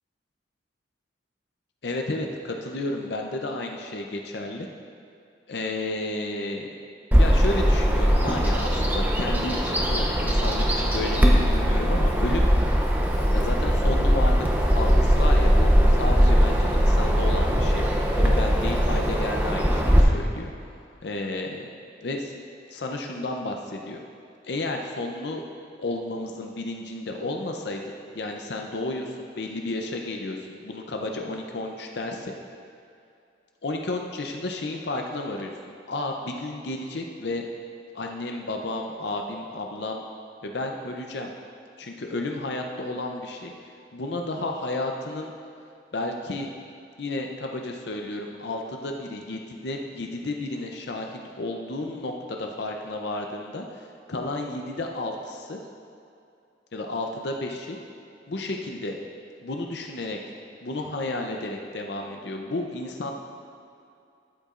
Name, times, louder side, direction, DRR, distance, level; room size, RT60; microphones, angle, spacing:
voice 1, 1.8-4.7 5.5-6.7 7.1-12.5 13.3-14.4 14.7-17.9 18.1-20.5 21.0-21.7 22.0-22.3 22.7-24.0 24.4-25.4 25.8-32.3 33.6-37.5 37.9-40.0 40.4-41.3 41.8-43.5 43.9-45.3 45.9-46.5 47.0-53.8 54.1-55.6 56.7-57.8 58.3-59.0 59.4-60.2 60.6-63.1, left 2 dB, 60° left, 2 dB, 0.6 m, -32 dB
Bird vocalization bird call bird song, 7.1-20.0, equal, 10° right, 0.6 m, -20 dB
12.5 x 8.2 x 2.5 m, 2.5 s
head